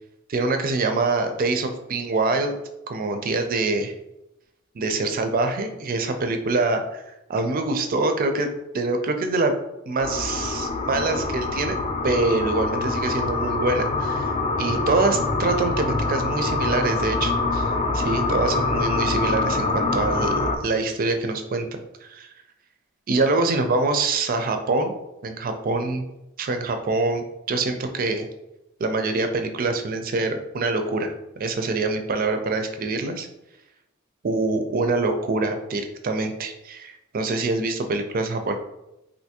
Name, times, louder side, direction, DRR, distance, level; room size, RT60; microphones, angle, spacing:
voice 1, 0.3-2.5 2.9-3.9 4.7-7.0 7.3-8.5 8.7-9.5 9.9-11.8 12.0-20.3 20.6-21.7 22.0-22.3 23.1-24.9 25.2-26.0 26.4-28.2 28.8-33.3 34.2-38.5, right 3 dB, 45° right, 6 dB, 0.4 m, -25 dB
sound 1, 10.0-20.6, left 3 dB, 30° left, 0.3 m, -25 dB
3.3 x 2.6 x 2.8 m, 0.89 s
head